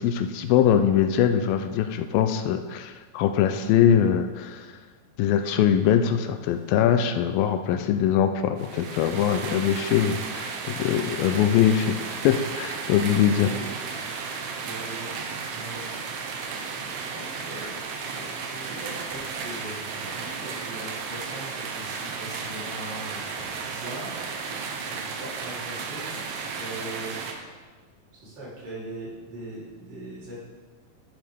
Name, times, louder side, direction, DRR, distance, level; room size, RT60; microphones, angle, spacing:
voice 1, 0.0-4.7 5.2-13.5, left 9 dB, 85° left, 8 dB, 2.3 m, -22 dB
voice 2, 7.7-8.0 13.3-13.7 14.1-15.9 16.7-24.1 24.8-27.1 28.2-30.4, right 1 dB, 65° right, -8 dB, 5.1 m, -41 dB
sound 1, 8.6-27.3, right 5 dB, 90° right, 2.8 m, -34 dB
11.0 x 10.0 x 3.6 m, 1.4 s
omnidirectional pair, 4.1 m